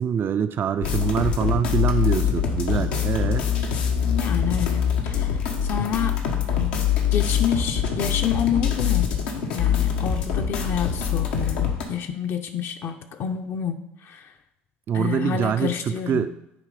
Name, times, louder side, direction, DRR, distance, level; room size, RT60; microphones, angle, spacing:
voice 1, 0.0-3.5 14.9-16.3, right 8 dB, 45° right, 11 dB, 0.5 m, -24 dB
sound 1, 0.8-11.8, left 8 dB, 80° left, 1.1 m, -24 dB
voice 2, 4.0-5.3 5.6-6.2 6.6-6.7 7.1-9.1 9.5-14.2 14.9-16.3, left 8 dB, 50° left, 6 dB, 0.8 m, -28 dB
9.1 x 3.3 x 5.0 m, 0.81 s
hypercardioid pair, 70°, 5 cm